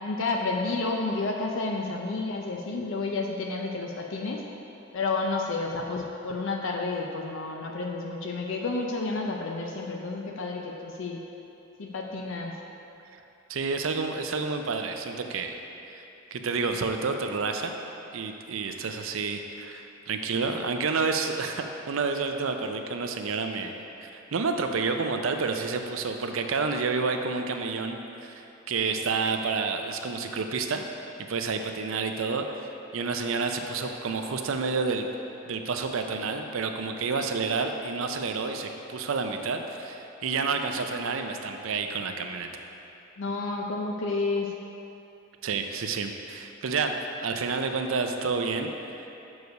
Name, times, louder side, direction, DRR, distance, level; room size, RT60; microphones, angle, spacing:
voice 1, 0.0-4.4 4.9-11.2 11.8-12.5 43.2-44.5, left 3 dB, 65° left, 1 dB, 0.5 m, -30 dB
voice 2, 13.5-15.6 15.9-16.0 16.3-17.8 18.1-30.8 31.3-32.5 32.9-35.1 35.5-42.5 45.4-49.1, right 4 dB, 75° right, 5 dB, 0.5 m, -29 dB
6.6 x 4.8 x 5.2 m, 2.9 s
head